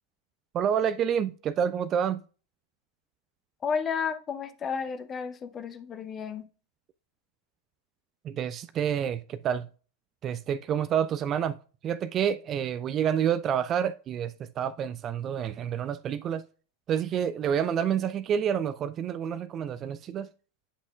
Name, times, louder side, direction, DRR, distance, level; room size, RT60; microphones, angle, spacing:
voice 1, 0.5-2.2 8.2-9.7 10.2-11.6 11.8-16.4 16.9-20.3, right 8 dB, 30° right, 0.3 m, -28 dB
voice 2, 3.6-6.5, left 6 dB, 25° left, 0.7 m, -32 dB
9.7 x 5.8 x 2.3 m
figure-of-eight pair, 90°, 0 cm